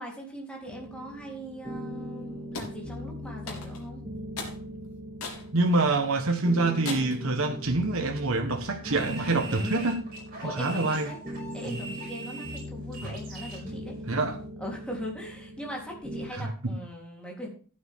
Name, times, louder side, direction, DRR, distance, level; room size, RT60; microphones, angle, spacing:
voice 1, 0.0-4.0 9.5-9.9 10.4-11.2 11.5-14.0 14.6-17.5, equal, 5° left, 3.5 m, -39 dB
sound 1, 0.7-16.3, equal, 25° right, 1.8 m, -40 dB
sound 2, 2.5-2.8 3.5-3.9 4.4-4.6 5.2-5.5 6.0-6.1 6.8-7.2, left 3 dB, 75° left, 3.4 m, -37 dB
voice 2, 5.5-10.0 10.4-11.1 11.6-11.8 13.0-13.1 14.1-14.4 16.3-16.7, right 2 dB, 65° right, 1.4 m, -26 dB
sound 3, 8.8-13.7, right 2 dB, 40° right, 5.7 m, -42 dB
14.0 x 9.0 x 3.7 m
head